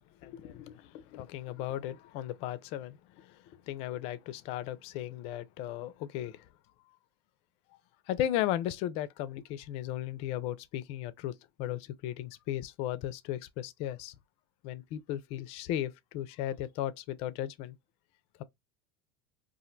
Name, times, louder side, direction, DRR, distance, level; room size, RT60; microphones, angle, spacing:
voice 1, 0.2-6.5 8.1-11.3 11.6-14.1 14.6-17.8, left 12 dB, 55° left, 0.4 m, -36 dB
2.5 x 2.1 x 3.8 m
supercardioid pair, 110°, 12 cm